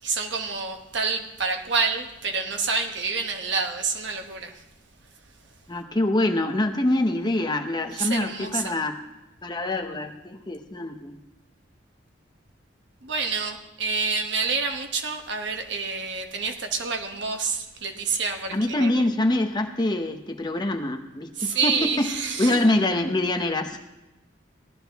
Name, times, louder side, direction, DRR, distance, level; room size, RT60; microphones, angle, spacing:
voice 1, 0.0-4.6 7.9-8.8 13.0-19.0 21.4-22.7, right 4 dB, 65° right, 5 dB, 1.2 m, -28 dB
voice 2, 5.7-9.0 9.4-11.2 18.5-22.1 22.4-23.9, left 1 dB, 20° left, 6 dB, 0.7 m, -25 dB
17.0 x 12.0 x 3.5 m, 0.97 s
head